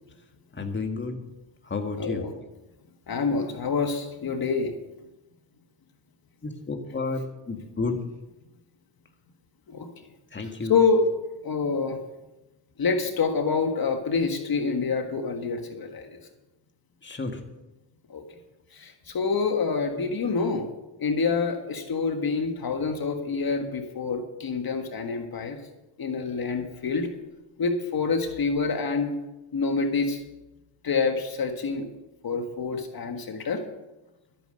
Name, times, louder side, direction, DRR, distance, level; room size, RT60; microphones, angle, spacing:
voice 1, 0.5-1.2 1.6-2.3 6.4-8.0 10.3-10.7 17.0-17.4, left 3 dB, 25° left, 4 dB, 1.8 m, -31 dB
voice 2, 2.0-2.3 3.1-4.7 9.7-9.9 10.7-11.1 11.4-12.0 12.8-16.2 18.1-18.2 18.7-20.7 21.0-25.6 26.0-27.1 27.6-29.2 29.5-30.2 30.8-31.9 32.2-33.6, left 4 dB, 50° left, 5 dB, 1.7 m, -27 dB
13.0 x 9.3 x 6.6 m, 1.0 s
cardioid pair, 80°, 46 cm